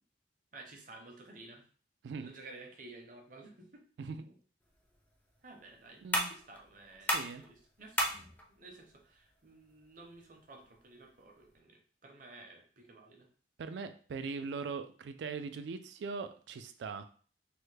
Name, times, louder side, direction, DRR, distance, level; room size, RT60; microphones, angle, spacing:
voice 1, 0.5-1.7 2.2-3.8 4.2-4.3 5.4-13.3, right 2 dB, 50° right, 2 dB, 0.6 m, -53 dB
sound 1, 4.6-11.6, equal, 10° left, 0.4 m, -39 dB
voice 2, 6.0-6.3 7.1-7.4 13.6-17.0, right 5 dB, 85° right, 9 dB, 0.3 m, -40 dB
3.3 x 2.1 x 3.2 m, 0.42 s
head